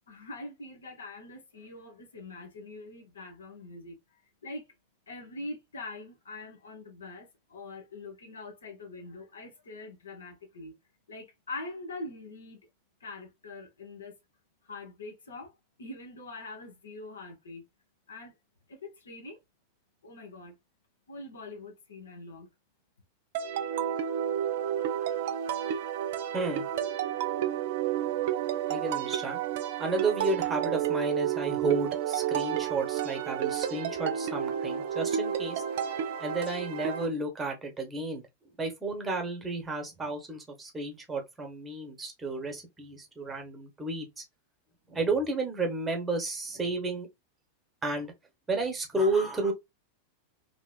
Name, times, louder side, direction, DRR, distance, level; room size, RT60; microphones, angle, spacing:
voice 1, 0.1-4.0 4.4-4.7 5.1-10.7 11.1-12.6 13.0-14.2 14.7-15.5 15.8-17.6 18.1-18.3 18.7-19.4 20.0-20.5 21.1-22.5, left 2 dB, 70° left, 0.9 m, -43 dB
sound 1, 23.3-37.1, right 10 dB, 55° right, 0.4 m, -31 dB
voice 2, 26.3-26.7 28.7-29.4 29.8-35.6 36.2-38.2 38.6-44.2 44.9-47.1 47.8-48.1 48.5-49.5, right 2 dB, 15° right, 1.1 m, -32 dB
2.8 x 2.8 x 2.3 m
figure-of-eight pair, 90°, 0 cm